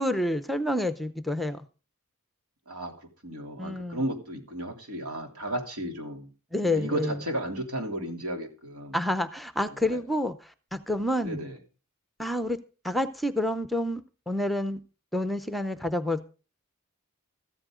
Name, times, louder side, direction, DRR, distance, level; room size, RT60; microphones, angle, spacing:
voice 1, 0.0-1.6 3.6-4.0 6.5-7.1 8.9-10.3 10.7-11.4 12.2-12.6 12.8-14.8 15.1-16.3, left 1 dB, ahead, 10 dB, 0.6 m, -28 dB
voice 2, 2.7-6.3 6.6-9.0 9.7-10.0 11.2-11.6, right 1 dB, 80° right, 3 dB, 3.2 m, -34 dB
14.0 x 14.0 x 3.8 m, 0.34 s
head